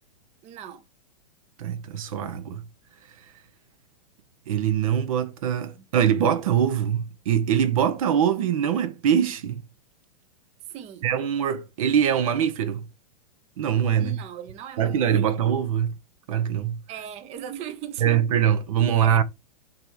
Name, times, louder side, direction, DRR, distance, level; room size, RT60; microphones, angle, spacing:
voice 1, 0.4-0.8 5.8-5.9 10.7-11.1 14.0-15.1 16.9-18.2 19.0-19.2, right 9 dB, 30° right, 0.8 m, -38 dB
voice 2, 1.6-2.6 4.5-9.6 11.0-12.8 13.6-14.2 14.8-15.9 16.3-16.8 18.0-19.2, right 9 dB, 55° right, 0.9 m, -23 dB
5.8 x 3.6 x 4.7 m
figure-of-eight pair, 100°, 21 cm